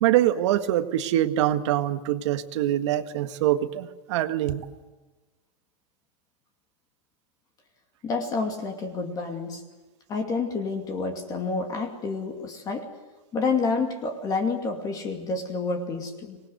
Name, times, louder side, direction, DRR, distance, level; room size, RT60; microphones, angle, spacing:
voice 1, 0.0-4.6, right 13 dB, 50° right, 9 dB, 1.7 m, -24 dB
voice 2, 8.0-9.6 10.1-12.9 13.3-16.4, left 4 dB, 20° left, 4 dB, 2.5 m, -29 dB
26.0 x 20.0 x 7.9 m, 1.2 s
hypercardioid pair, 155°, 20 cm